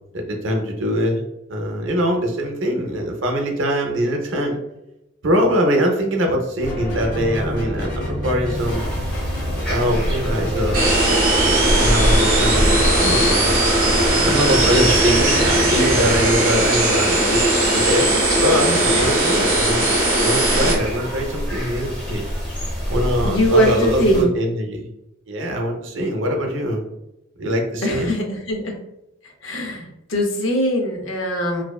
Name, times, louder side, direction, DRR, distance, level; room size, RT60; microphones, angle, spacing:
voice 1, 0.1-1.2 1.5-4.6 5.2-8.9 9.7-13.6 14.3-17.5 17.7-19.8 20.2-22.3 22.9-24.9 25.3-26.8 27.4-28.2, equal, 70° right, 2 dB, 0.5 m, -22 dB
sound 1, 6.6-16.3, equal, 40° left, 0.8 m, -27 dB
sound 2, 8.5-24.2, equal, 5° left, 0.7 m, -26 dB
sound 3, 10.7-20.7, right 1 dB, 45° right, 0.8 m, -18 dB
voice 2, 23.2-24.3 27.8-28.8 29.4-31.6, equal, 75° left, 3 dB, 0.5 m, -21 dB
2.6 x 2.1 x 2.3 m, 0.87 s
head